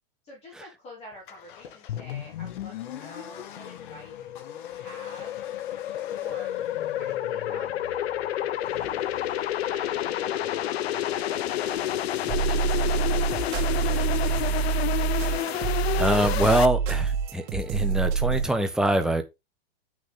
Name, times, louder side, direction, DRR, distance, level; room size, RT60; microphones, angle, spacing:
voice 1, 0.2-4.2 4.4-5.4 6.1-6.5 6.8-11.9, left 1 dB, 20° left, 2.8 m, -48 dB
Accelerating revving vroom, 1.1-14.6, left 10 dB, 55° left, 1.5 m, -47 dB
sound 1, 1.9-16.7, left 12 dB, 90° left, 0.8 m, -30 dB
sound 2, 12.3-18.4, right 7 dB, 40° right, 2.5 m, -26 dB
voice 2, 16.0-19.2, right 1 dB, ahead, 0.6 m, -24 dB
7.9 x 6.2 x 3.6 m
supercardioid pair, 165°, 30 cm